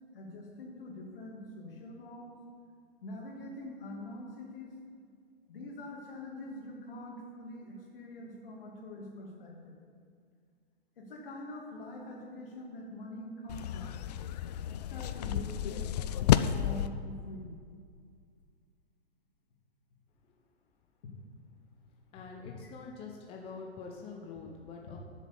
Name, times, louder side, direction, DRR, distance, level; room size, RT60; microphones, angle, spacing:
voice 1, 0.1-2.4 3.0-4.7 5.5-9.8 11.0-14.0 14.7-17.5 22.1-22.2, left 1 dB, 60° left, -1 dB, 2.5 m, -45 dB
sound 1, 13.5-16.9, left 10 dB, 40° left, 0.4 m, -30 dB
voice 2, 22.1-25.0, left 4 dB, 20° left, 0 dB, 0.7 m, -45 dB
8.0 x 7.2 x 6.9 m, 2.1 s
hypercardioid pair, 125°, 31 cm